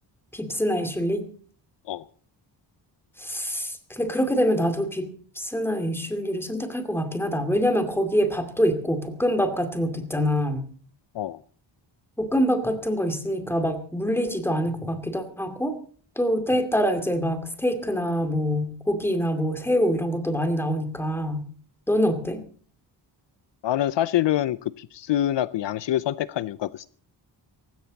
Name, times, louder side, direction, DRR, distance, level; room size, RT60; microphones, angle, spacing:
voice 1, 0.3-1.3 3.2-10.7 12.2-15.8 16.2-21.5 21.9-22.4, equal, 5° left, 7 dB, 2.4 m, -25 dB
voice 2, 23.6-26.9, left 12 dB, 70° left, 17 dB, 0.7 m, -26 dB
18.5 x 16.0 x 4.1 m, 0.43 s
wide cardioid pair, 145°, 45 cm